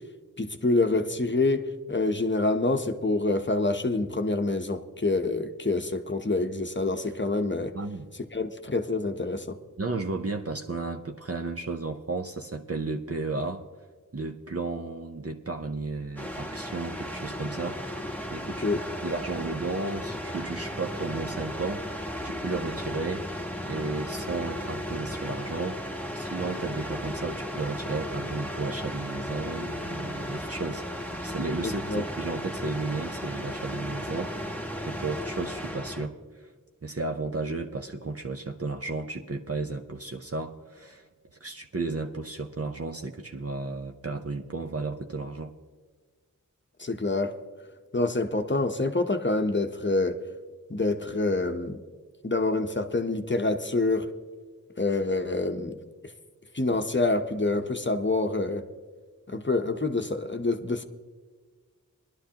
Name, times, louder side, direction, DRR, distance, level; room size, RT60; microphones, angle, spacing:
voice 1, 0.4-7.7 8.3-9.6 18.6-18.8 31.6-32.0 46.8-47.4 47.9-50.2 50.7-51.8 52.2-54.1 54.8-55.8 56.5-58.6 59.3-60.8, left 2 dB, 35° left, 6 dB, 0.8 m, -26 dB
voice 2, 7.7-8.1 9.8-13.6 14.1-18.7 19.0-23.3 23.6-30.9 31.1-36.5 36.8-41.1 41.4-45.5, right 3 dB, 45° right, 3 dB, 0.7 m, -33 dB
sound 1, 16.2-36.1, equal, 5° left, 1.0 m, -35 dB
20.5 x 11.5 x 2.9 m, 1.5 s
wide cardioid pair, 50°, 34 cm